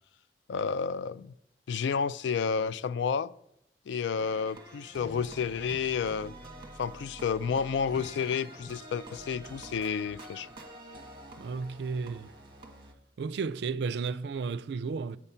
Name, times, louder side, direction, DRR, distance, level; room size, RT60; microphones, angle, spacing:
voice 1, 0.5-1.3 1.7-3.3 3.9-6.3 6.8-10.5, left 6 dB, 85° left, 0.3 m, -30 dB
sound 1, 4.2-12.9, right 1 dB, 25° right, 1.3 m, -47 dB
voice 2, 11.4-12.3 13.2-15.2, right 5 dB, 70° right, 0.3 m, -33 dB
8.1 x 5.5 x 7.0 m
head